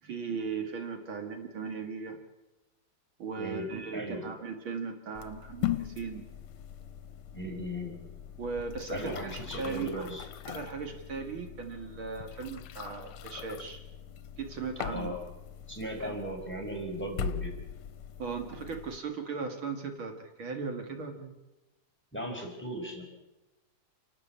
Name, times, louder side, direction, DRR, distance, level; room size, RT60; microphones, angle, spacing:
voice 1, 0.0-2.2 3.2-6.3 8.4-10.1 10.5-13.8 14.4-15.2 15.9-16.2 18.2-21.3, right 5 dB, 70° right, 5 dB, 2.7 m, -37 dB
voice 2, 3.9-4.3 7.3-7.9 8.9-10.3 14.9-15.2 15.7-17.5 22.1-23.0, equal, 5° left, 0 dB, 4.6 m, -37 dB
sound 1, 5.1-19.0, left 9 dB, 85° left, 1.8 m, -40 dB
28.5 x 12.0 x 8.7 m, 1.0 s
omnidirectional pair, 2.4 m